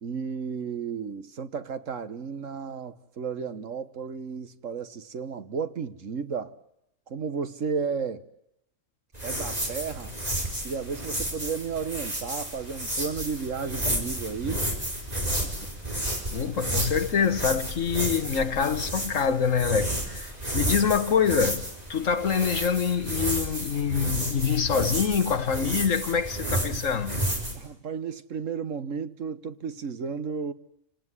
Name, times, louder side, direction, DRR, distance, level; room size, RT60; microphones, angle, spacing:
voice 1, 0.0-6.6 7.1-8.3 9.2-10.2 10.6-14.7 15.6-15.7 27.5-30.5, right 5 dB, 65° right, 1.6 m, -33 dB
sound 1, 9.1-27.5, right 1 dB, 30° right, 5.5 m, -31 dB
voice 2, 16.3-27.2, left 6 dB, 70° left, 1.7 m, -25 dB
28.5 x 19.0 x 9.7 m
omnidirectional pair, 1.4 m